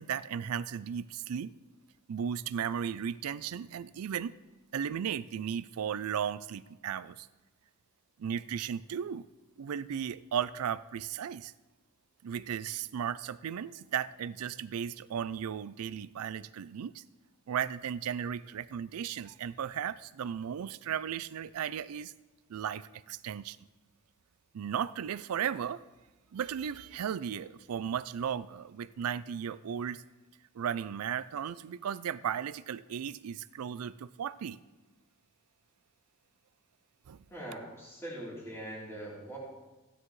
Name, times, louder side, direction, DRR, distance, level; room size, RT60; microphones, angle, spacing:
voice 1, 0.0-1.5 2.1-4.4 4.7-7.3 8.2-9.3 9.6-11.5 12.2-17.0 17.5-22.1 22.5-23.6 24.5-25.8 26.3-30.0 30.5-34.6 37.1-37.2, right 8 dB, 90° right, 17 dB, 0.4 m, -35 dB
voice 2, 37.3-39.4, right 1 dB, 10° left, -7 dB, 3.5 m, -42 dB
16.0 x 9.7 x 3.2 m, 1.1 s
head